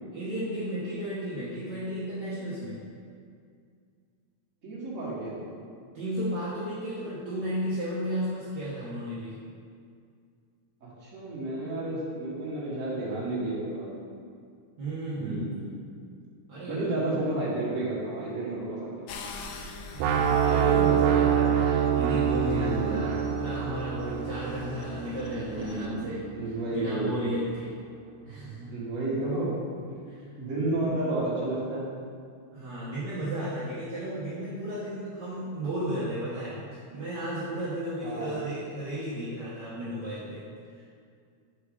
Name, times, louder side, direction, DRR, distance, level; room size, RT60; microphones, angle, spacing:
voice 1, 0.1-2.8 5.9-9.3 14.8-15.4 16.5-17.2 19.9-26.2 26.7-27.7 28.3-28.7 30.1-30.3 32.5-36.6 36.9-40.4 40.7-40.9, right 1 dB, 60° right, -10 dB, 1.1 m, -33 dB
voice 2, 4.6-5.5 10.8-13.9 15.2-15.7 16.7-19.2 22.4-23.2 25.2-27.3 28.7-29.5 30.4-31.9 38.0-38.4, right 2 dB, 35° right, -7 dB, 1.4 m, -32 dB
sound 1, 19.1-25.9, left 3 dB, 80° left, 1.4 m, -45 dB
sound 2, 20.0-25.9, right 8 dB, 90° right, 2.0 m, -26 dB
6.5 x 6.4 x 3.7 m, 2.2 s
omnidirectional pair, 3.4 m